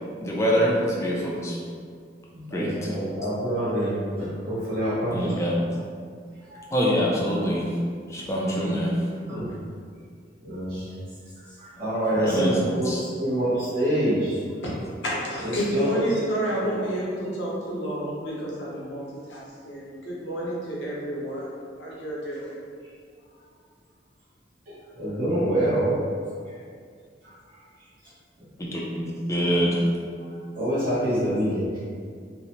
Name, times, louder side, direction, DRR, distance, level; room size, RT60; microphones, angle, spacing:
voice 1, 0.2-1.6 2.5-2.7 5.1-5.6 6.7-7.7 8.1-9.0 12.2-13.0 28.6-29.9, equal, 15° left, -4 dB, 0.4 m, -25 dB
voice 2, 2.3-5.4 6.5-6.6 8.2-8.3 9.3-9.5 10.4-10.9 11.6-14.4 15.4-16.2 16.8-16.9 24.7-25.9 26.5-26.6 27.2-27.3 30.2-30.3 30.5-31.8, equal, 50° right, -12 dB, 0.8 m, -26 dB
voice 3, 15.0-19.0 19.3-22.6, right 1 dB, 80° left, -6 dB, 0.8 m, -30 dB
2.7 x 2.0 x 2.8 m, 2.1 s
head